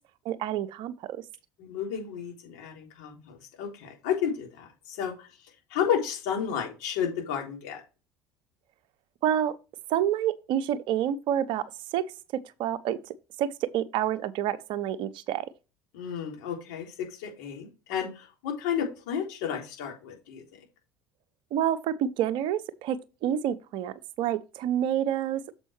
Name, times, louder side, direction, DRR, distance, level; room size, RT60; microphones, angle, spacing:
voice 1, 0.2-1.2 9.2-9.6 9.9-12.1 12.6-13.0 13.4-15.5 21.5-25.5, right 10 dB, 60° right, 0.8 m, -28 dB
voice 2, 1.6-5.3 5.7-7.8 15.9-20.4, left 8 dB, 70° left, 3.6 m, -32 dB
7.3 x 5.4 x 4.4 m
hypercardioid pair, 65°, 9 cm